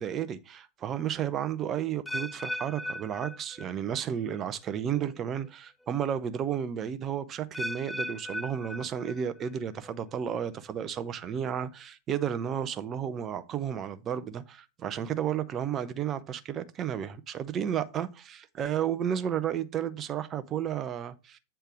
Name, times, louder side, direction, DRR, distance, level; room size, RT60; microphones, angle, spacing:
voice 1, 0.0-21.4, right 9 dB, 30° right, 0.7 m, -32 dB
sound 1, 2.1-4.1 4.3-4.8 5.4-5.5 7.5-9.5 9.8-10.3 10.9-11.0, left 1 dB, 5° left, 0.4 m, -38 dB
8.2 x 3.4 x 6.2 m
figure-of-eight pair, 90°, 0 cm